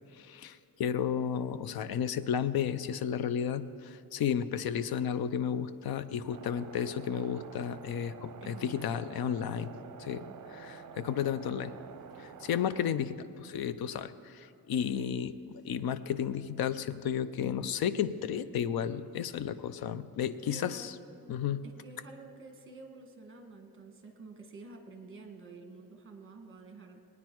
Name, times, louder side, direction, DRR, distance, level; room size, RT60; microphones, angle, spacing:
voice 1, 0.2-9.7 10.0-10.2 10.6-11.7 12.2-15.3 15.6-20.9 21.3-21.6, left 8 dB, 75° left, 13 dB, 0.6 m, -33 dB
sound 1, 6.3-12.9, right 6 dB, 55° right, 0.7 m, -48 dB
voice 2, 8.4-8.9 10.0-10.4 14.9-15.1 20.4-20.9 21.6-27.0, right 3 dB, 35° right, 4 dB, 1.4 m, -49 dB
20.0 x 9.5 x 4.6 m, 2.7 s
wide cardioid pair, 145°, 37 cm